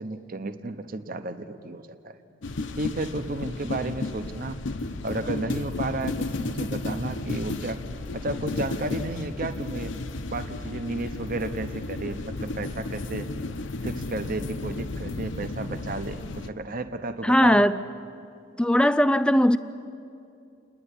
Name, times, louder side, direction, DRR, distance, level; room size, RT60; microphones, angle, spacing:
voice 1, 0.0-2.2 2.8-4.6 5.0-7.8 8.1-10.0 10.3-13.3 13.8-17.7, right 2 dB, 45° right, 9 dB, 0.9 m, -33 dB
sound 1, 2.4-16.5, left 2 dB, 65° left, 0.8 m, -33 dB
voice 2, 17.2-17.8 18.6-19.6, equal, 5° left, 13 dB, 0.4 m, -19 dB
28.5 x 10.5 x 9.9 m, 2.6 s
head